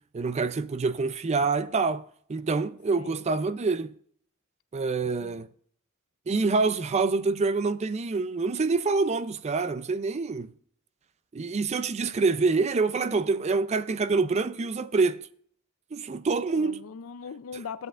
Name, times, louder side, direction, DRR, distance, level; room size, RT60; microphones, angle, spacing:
voice 1, 0.1-2.0 2.3-3.9 4.7-5.5 6.3-10.5 11.3-15.3 15.9-16.8, right 4 dB, 30° right, 0.4 m, -26 dB
voice 2, 3.0-3.6 5.2-5.4 16.5-17.9, left 6 dB, 80° left, 0.4 m, -41 dB
14.5 x 8.0 x 2.4 m
head